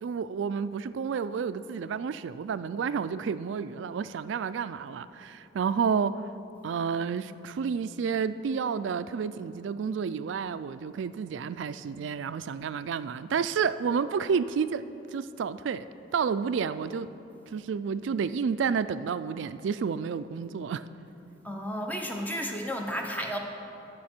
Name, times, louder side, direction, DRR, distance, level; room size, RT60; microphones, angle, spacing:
voice 1, 0.0-6.1 6.6-14.8 15.1-15.9 16.1-17.1 17.5-20.9, right 6 dB, 70° right, 14 dB, 0.3 m, -30 dB
voice 2, 21.4-23.4, equal, 10° left, 2 dB, 0.7 m, -32 dB
14.5 x 6.1 x 4.4 m, 2.9 s
head